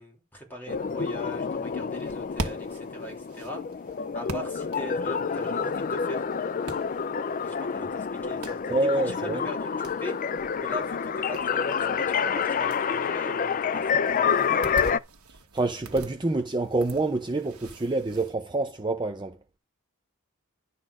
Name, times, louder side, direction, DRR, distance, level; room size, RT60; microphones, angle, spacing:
voice 1, 0.0-3.6 4.1-6.3 7.4-15.0, equal, 10° left, 3.4 m, -41 dB
sound 1, 0.7-15.0, left 6 dB, 40° left, 0.4 m, -28 dB
sound 2, 1.9-18.3, right 2 dB, 80° right, 1.5 m, -44 dB
voice 2, 8.7-9.5 15.5-19.4, right 2 dB, 20° right, 0.6 m, -27 dB
11.5 x 4.1 x 6.4 m
head